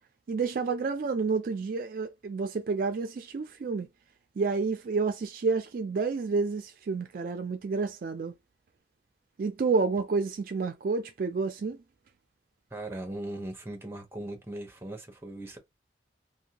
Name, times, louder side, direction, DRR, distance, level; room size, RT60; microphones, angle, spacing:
voice 1, 0.3-3.9 4.4-8.3 9.4-11.8, right 4 dB, 55° right, 0.3 m, -29 dB
voice 2, 12.7-15.6, right 1 dB, 15° right, 0.7 m, -39 dB
2.5 x 2.1 x 2.8 m
head